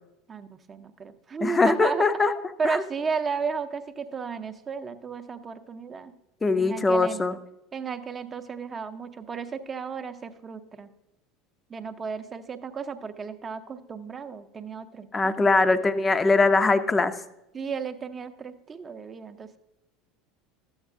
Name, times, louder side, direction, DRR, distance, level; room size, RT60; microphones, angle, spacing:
voice 1, 0.3-6.1 6.6-7.2 7.7-10.9 11.7-15.9 17.5-19.6, right 5 dB, 25° right, 9 dB, 0.7 m, -33 dB
voice 2, 1.4-2.3 2.6-2.8 6.4-7.4 15.1-17.1, left 3 dB, 20° left, 11 dB, 0.6 m, -21 dB
13.0 x 8.0 x 2.5 m, 0.90 s
figure-of-eight pair, 75°, 0 cm